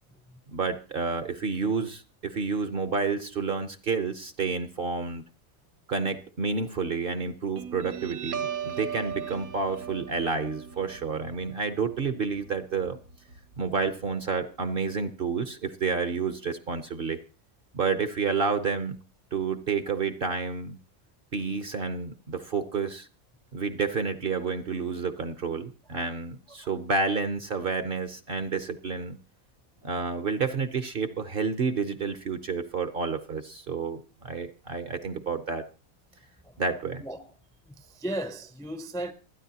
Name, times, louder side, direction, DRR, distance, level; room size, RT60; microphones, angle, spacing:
voice 1, 0.5-5.2 5.9-13.0 13.6-17.2 17.7-19.0 19.3-20.8 21.3-23.1 23.5-29.2 29.8-35.6 36.6-37.0, right 5 dB, 45° right, 0.8 m, -30 dB
Guitar, 7.6-14.6, right 8 dB, 75° right, 1.4 m, -39 dB
voice 2, 37.7-39.1, right 1 dB, 5° left, 0.5 m, -35 dB
27.0 x 9.9 x 2.8 m
omnidirectional pair, 1.5 m